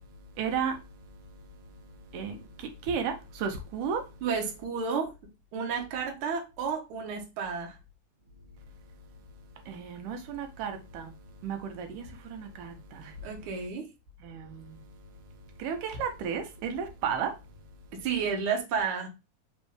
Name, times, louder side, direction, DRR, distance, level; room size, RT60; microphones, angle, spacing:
voice 1, 0.4-0.8 2.1-4.1 9.7-11.1 11.4-13.1 14.2-14.8 15.6-17.3, right 6 dB, 85° right, 2.3 m, -34 dB
voice 2, 4.2-5.1 5.5-7.8 13.2-13.9 17.9-19.1, right 6 dB, 60° right, 1.5 m, -31 dB
5.3 x 3.1 x 3.2 m
omnidirectional pair, 3.7 m